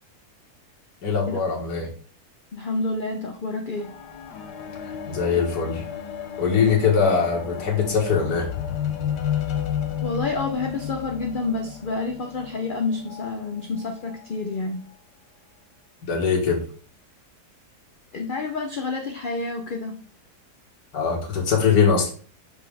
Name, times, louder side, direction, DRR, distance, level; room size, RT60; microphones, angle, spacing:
voice 1, 1.0-1.9 5.1-5.8 6.4-8.5 16.1-16.6 20.9-22.1, left 6 dB, 70° left, 0 dB, 2.1 m, -21 dB
voice 2, 2.5-3.9 10.0-14.8 18.1-20.0, left 3 dB, 50° left, 3 dB, 0.6 m, -29 dB
sound 1, 3.8-13.3 14.1-14.2, left 9 dB, 85° left, 1.5 m, -32 dB
5.9 x 5.2 x 3.5 m, 0.42 s
omnidirectional pair, 1.7 m